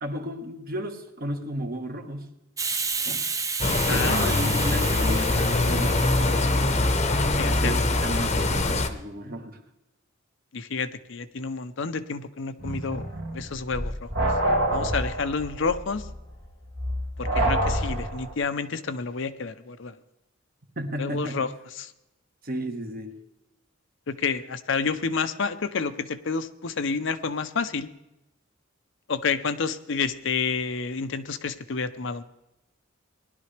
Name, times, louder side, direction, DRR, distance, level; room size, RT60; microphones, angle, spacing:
voice 1, 0.0-2.3 3.0-3.2 3.9-6.0 7.6-9.6 20.8-21.5 22.4-23.1, equal, 45° right, 5 dB, 1.4 m, -33 dB
Hiss, 2.6-7.9, right 5 dB, 15° right, 0.6 m, -32 dB
sound 1, 3.6-8.9, left 2 dB, 35° left, 0.9 m, -23 dB
voice 2, 3.9-4.2 7.4-7.8 10.5-13.1 13.3-14.1 14.7-16.1 17.2-20.0 21.0-21.5 21.8-21.9 24.1-27.9 29.1-32.2, left 5 dB, 65° left, 11 dB, 0.7 m, -29 dB
sound 2, 12.6-18.3, right 1 dB, 65° right, 2.1 m, -27 dB
19.5 x 11.5 x 3.3 m, 0.89 s
head